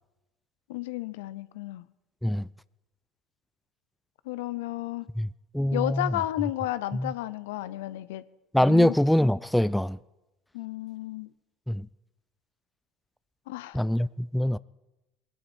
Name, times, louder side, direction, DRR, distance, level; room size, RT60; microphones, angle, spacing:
voice 1, 0.7-1.9 4.3-5.1 5.7-8.2 8.7-8.9 10.5-11.3 13.5-13.8, left 16 dB, 85° left, 0.6 m, -32 dB
voice 2, 5.5-6.2 6.9-7.1 8.5-10.0 11.7-11.9 13.7-14.6, left 1 dB, 5° left, 0.4 m, -24 dB
21.5 x 11.0 x 4.5 m
hypercardioid pair, 80°, 0 cm